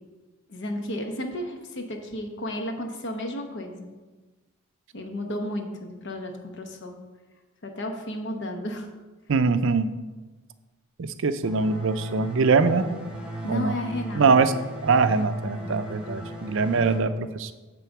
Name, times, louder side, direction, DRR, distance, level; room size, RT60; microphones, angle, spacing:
voice 1, 0.5-3.9 4.9-7.0 7.6-8.9 13.4-14.2 15.5-15.8, left 1 dB, 55° left, 4 dB, 1.0 m, -33 dB
voice 2, 9.3-9.9 11.0-12.8 13.5-13.7 14.1-14.5 14.8-17.5, right 4 dB, 65° right, 11 dB, 0.5 m, -22 dB
sound 1, 11.4-17.0, right 1 dB, 5° right, 1.3 m, -34 dB
9.0 x 3.8 x 7.1 m, 1.2 s
head